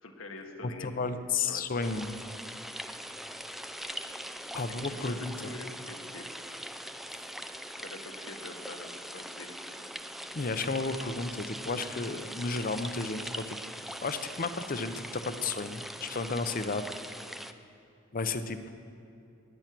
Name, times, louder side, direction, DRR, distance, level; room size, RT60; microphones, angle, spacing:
voice 1, 0.0-1.1 1.4-1.9 4.7-6.3 7.8-9.7, left 2 dB, 85° left, 3 dB, 1.6 m, -45 dB
voice 2, 0.6-2.2 4.5-5.3 7.1-7.2 10.3-13.6 14.0-16.9 18.1-18.7, left 4 dB, 45° left, 10 dB, 0.7 m, -33 dB
sound 1, 1.8-17.5, equal, ahead, 0.4 m, -42 dB
19.0 x 9.6 x 6.1 m, 2.6 s
head